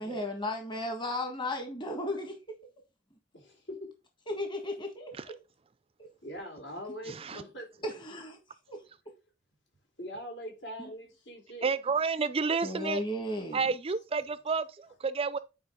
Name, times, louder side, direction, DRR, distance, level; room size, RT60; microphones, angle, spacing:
voice 1, 0.0-2.4 4.3-5.3 7.8-8.4 8.7-8.8 10.8-10.9 12.6-13.6, left 1 dB, 25° left, 1.5 m, -35 dB
voice 2, 3.3-3.9 6.2-8.2 10.0-11.7, equal, 70° left, 3.7 m, -42 dB
voice 3, 7.1-7.4 11.6-13.0 13.5-15.4, right 5 dB, 30° right, 0.4 m, -30 dB
9.4 x 4.7 x 3.7 m
head